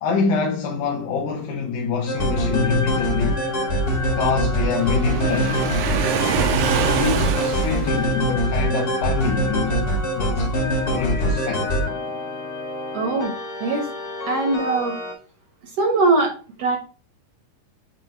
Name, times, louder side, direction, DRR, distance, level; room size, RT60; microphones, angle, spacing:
voice 1, 0.0-3.4 4.1-5.6 6.9-9.8 10.2-10.5 10.9-11.7, left 5 dB, 70° left, 2.1 m, -25 dB
sound 1, 2.1-15.1, equal, 40° left, 1.5 m, -24 dB
Waves surf, 4.8-8.3, right 8 dB, 80° right, 2.4 m, -25 dB
voice 2, 12.9-13.3 13.6-13.9 14.3-14.9 15.8-16.3 16.6-16.8, right 3 dB, 60° right, 1.7 m, -20 dB
7.7 x 3.0 x 4.3 m
omnidirectional pair, 4.0 m